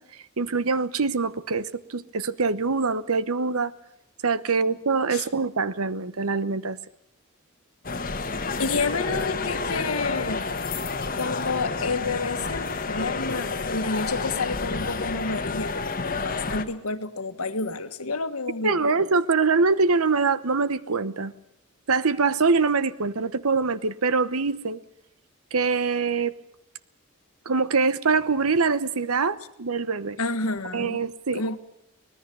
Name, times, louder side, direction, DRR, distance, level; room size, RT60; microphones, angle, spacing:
voice 1, 0.4-3.7 4.2-6.8 18.6-21.3 21.9-24.8 25.5-26.3 27.5-30.2 30.7-31.6, right 4 dB, 75° right, 15 dB, 1.0 m, -24 dB
sound 1, 7.8-16.6, left 4 dB, 40° left, 1.3 m, -30 dB
voice 2, 8.2-10.7 11.1-19.0 30.2-31.0 31.3-31.6, left 3 dB, 80° left, 9 dB, 1.6 m, -30 dB
24.5 x 19.0 x 6.9 m, 0.76 s
head